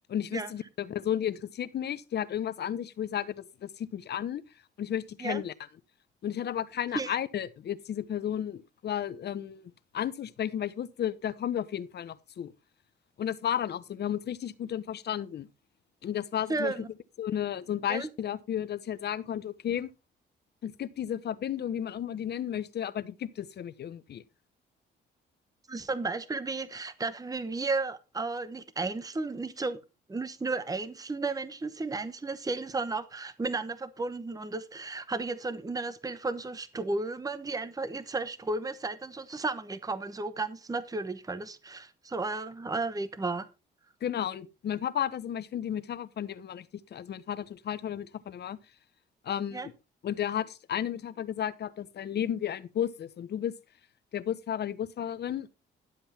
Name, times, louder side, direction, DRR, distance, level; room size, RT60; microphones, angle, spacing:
voice 1, 0.1-4.4 4.8-5.5 6.2-12.5 13.2-15.5 16.0-16.7 17.2-19.9 20.6-24.2 44.0-46.7 46.9-48.6 49.2-49.7 50.0-53.5 54.1-55.5, left 10 dB, 55° left, 1.0 m, -33 dB
voice 2, 16.5-16.9 17.9-18.1 25.7-29.8 30.1-43.5 49.5-49.7, right 3 dB, 20° right, 1.0 m, -33 dB
12.0 x 7.8 x 4.3 m
cardioid pair, 90°, 20 cm